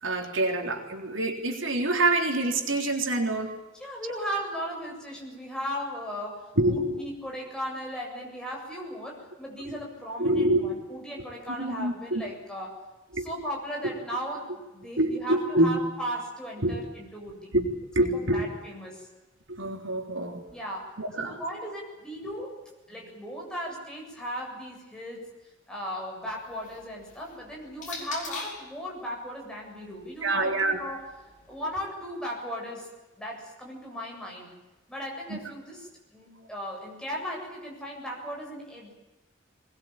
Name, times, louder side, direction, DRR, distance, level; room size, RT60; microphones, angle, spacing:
voice 1, 0.0-3.6 6.6-7.0 9.7-9.8 10.2-10.6 11.6-12.2 13.1-13.3 13.8-13.9 15.0-15.7 16.6-16.8 17.5-18.4 19.5-20.4 21.0-21.4 30.2-30.8 35.3-35.4, right 2 dB, 75° right, 3 dB, 3.6 m, -26 dB
voice 2, 3.8-12.8 13.1-17.5 18.1-19.1 20.5-22.5 22.9-25.3 25.7-31.0 31.5-32.9 33.2-34.5 34.9-35.9 36.1-38.9, equal, 5° left, -2 dB, 7.9 m, -37 dB
sound 1, 26.3-28.7 29.7-31.8, left 4 dB, 40° left, 6.8 m, -44 dB
22.5 x 21.0 x 9.0 m, 1.1 s
head